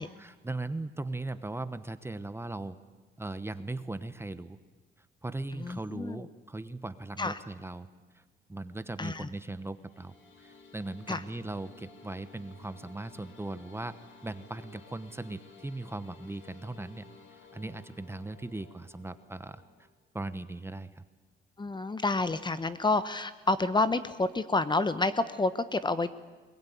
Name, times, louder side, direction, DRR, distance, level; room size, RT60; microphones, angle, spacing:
voice 1, 0.0-2.8 3.2-4.6 5.0-7.9 8.1-8.2 8.5-13.9 14.2-19.6 20.1-21.0, right 2 dB, 10° right, 12 dB, 1.0 m, -39 dB
voice 2, 5.6-6.2 7.2-7.4 9.0-9.3 11.1-11.2 21.6-26.1, left 3 dB, 20° left, 13 dB, 1.0 m, -29 dB
sound 1, 9.7-19.8, left 4 dB, 75° left, 3.4 m, -55 dB
21.5 x 21.0 x 9.4 m, 1.3 s
cardioid pair, 90°, 20 cm